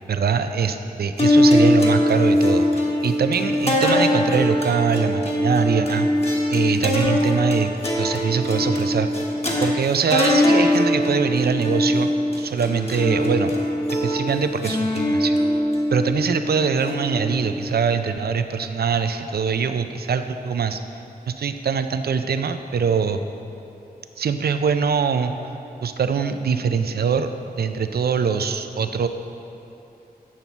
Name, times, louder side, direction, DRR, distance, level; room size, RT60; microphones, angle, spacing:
voice 1, 0.1-6.1 6.5-7.7 8.0-9.1 9.6-13.5 14.0-15.4 15.9-20.8 21.3-23.2 24.2-25.3 25.8-27.3 27.6-29.1, right 6 dB, 75° right, 9 dB, 0.4 m, -23 dB
sound 1, 1.2-17.6, left 1 dB, 40° left, 1.2 m, -21 dB
8.8 x 5.9 x 4.0 m, 2.9 s
wide cardioid pair, 90°, 16 cm